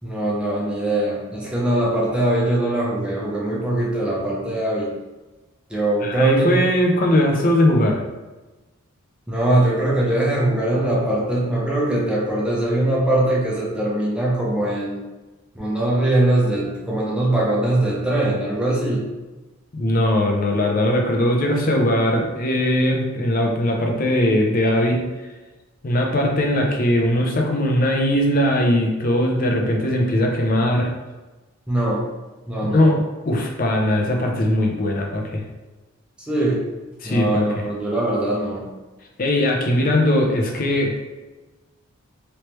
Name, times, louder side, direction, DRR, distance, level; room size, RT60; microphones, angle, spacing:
voice 1, 0.0-4.9 5.7-6.6 9.3-15.0 15.5-19.0 31.7-32.1 32.5-32.9 36.2-36.6 37.0-38.7, right 1 dB, 5° right, -5 dB, 0.6 m, -21 dB
voice 2, 6.0-8.0 19.7-25.0 25.8-30.9 32.7-35.4 37.0-37.6 39.2-41.0, left 1 dB, 40° left, 1 dB, 0.5 m, -20 dB
3.1 x 3.1 x 3.0 m, 1.2 s
head